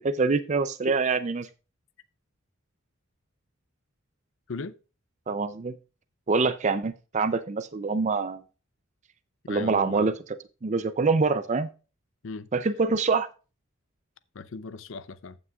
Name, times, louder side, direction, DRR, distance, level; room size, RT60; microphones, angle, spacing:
voice 1, 0.0-1.5 5.3-5.8 6.3-8.4 9.5-10.2 10.6-11.7 12.5-13.3, right 4 dB, 35° right, 0.4 m, -25 dB
voice 2, 9.5-10.1 12.2-12.5 14.3-15.4, left 4 dB, 65° left, 0.6 m, -38 dB
14.5 x 6.1 x 2.4 m
head